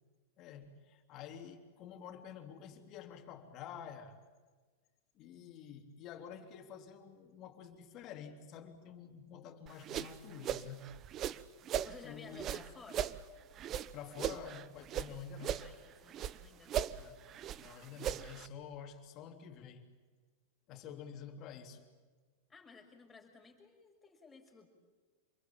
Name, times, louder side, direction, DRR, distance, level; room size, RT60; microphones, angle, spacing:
voice 1, 0.4-4.2 5.1-10.9 12.0-12.5 13.9-15.6 16.2-16.4 17.0-17.2 17.6-19.9 20.7-21.9, left 7 dB, 45° left, 3.3 m, -49 dB
sound 1, 9.7-11.9 12.3-15.1 15.4-16.4 16.7-18.5, right 10 dB, 35° right, 0.9 m, -38 dB
voice 2, 11.8-13.1 15.6-17.0 22.5-24.7, left 4 dB, 15° left, 6.1 m, -55 dB
27.0 x 22.0 x 8.9 m
hypercardioid pair, 110°, 0 cm